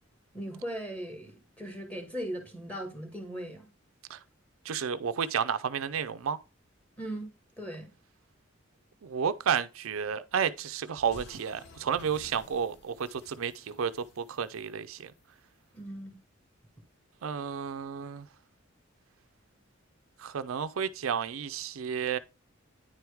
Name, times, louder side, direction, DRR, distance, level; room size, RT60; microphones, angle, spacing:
voice 1, 0.3-3.7 7.0-7.3 7.6-7.9 15.7-16.1, right 1 dB, 10° left, 1.8 m, -38 dB
voice 2, 4.6-6.4 9.0-15.1 17.2-18.3 20.2-22.2, right 7 dB, 85° right, 0.5 m, -31 dB
sound 1, 11.0-15.4, left 2 dB, 55° left, 1.0 m, -53 dB
9.7 x 4.6 x 3.5 m
head